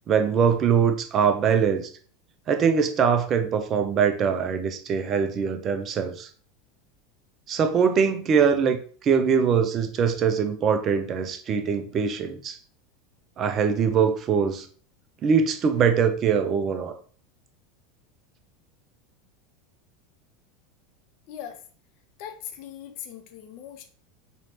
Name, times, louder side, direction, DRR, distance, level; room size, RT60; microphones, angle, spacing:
voice 1, 0.1-1.9 2.5-6.3 7.5-12.6 13.4-14.7 15.2-17.0, right 6 dB, 35° right, 7 dB, 0.6 m, -22 dB
voice 2, 21.3-21.6 22.2-23.9, left 9 dB, 55° left, 6 dB, 0.6 m, -40 dB
4.1 x 3.1 x 2.8 m, 0.43 s
figure-of-eight pair, 80°, 0 cm